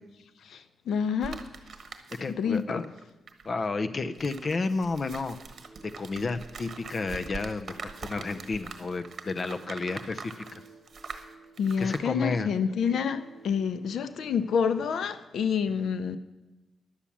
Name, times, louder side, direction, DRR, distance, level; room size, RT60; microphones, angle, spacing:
voice 1, 0.4-1.4 2.4-2.8 11.6-16.2, left 6 dB, 75° left, 13 dB, 0.7 m, -28 dB
sound 1, 1.2-2.6 2.8-12.1, right 5 dB, 50° right, 1.3 m, -43 dB
voice 2, 2.2-2.9 3.4-5.4 5.8-10.6 11.8-12.5, left 3 dB, 40° left, 10 dB, 0.6 m, -31 dB
sound 2, 5.4-13.8, right 2 dB, 5° left, 2.5 m, -54 dB
11.5 x 7.2 x 8.4 m, 1.1 s
cardioid pair, 115°, 0 cm